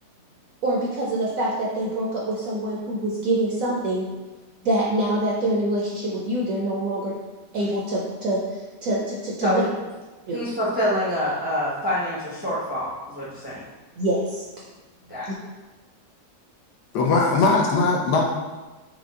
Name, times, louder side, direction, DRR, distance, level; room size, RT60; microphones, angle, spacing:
voice 1, 0.6-4.1 4.6-7.2 7.5-9.5 10.3-10.4 14.0-14.4 15.3-15.4, right 1 dB, 70° right, -3 dB, 0.8 m, -25 dB
voice 2, 10.3-13.6 15.1-15.3, equal, 10° right, -8 dB, 0.5 m, -26 dB
voice 3, 16.9-18.2, left 3 dB, 75° left, 0 dB, 1.1 m, -19 dB
5.1 x 2.2 x 3.5 m, 1.2 s
omnidirectional pair, 1.9 m